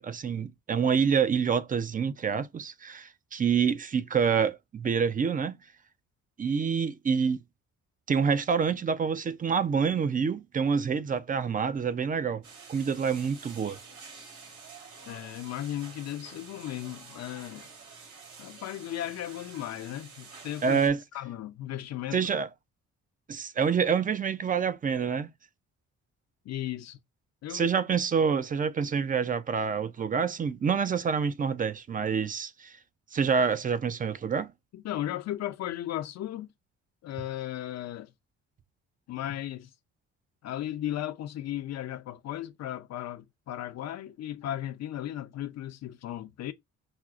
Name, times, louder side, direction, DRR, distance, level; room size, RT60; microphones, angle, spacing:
voice 1, 0.0-5.6 6.4-7.4 8.1-12.4 12.7-13.8 20.6-21.0 22.1-22.5 23.3-25.3 27.5-32.7 33.1-34.5, right 6 dB, 30° right, 0.4 m, -27 dB
sound 1, 12.4-20.9, right 4 dB, 75° right, 2.1 m, -49 dB
voice 2, 15.1-17.7 18.4-20.8 21.1-22.2 26.5-27.0 27.4-27.7 34.7-36.5 37.0-38.1 39.1-39.7 40.4-46.5, left 12 dB, 60° left, 0.5 m, -36 dB
5.7 x 2.0 x 2.4 m
cardioid pair, 90°, 30 cm